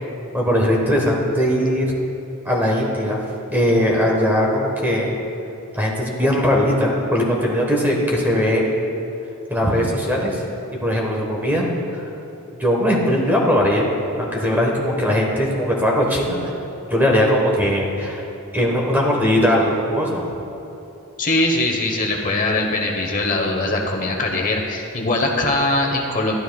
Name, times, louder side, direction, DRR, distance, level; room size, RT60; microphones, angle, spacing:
voice 1, 0.3-1.8 2.4-3.2 3.5-5.1 5.7-8.9 9.5-10.4 10.8-11.7 11.9-12.0 12.6-13.9 14.2-16.4 16.9-18.2 18.5-20.2, equal, 10° right, -2 dB, 1.1 m, -19 dB
voice 2, 21.2-26.4, left 2 dB, 35° left, 1 dB, 1.0 m, -21 dB
12.5 x 12.5 x 2.3 m, 2.9 s
head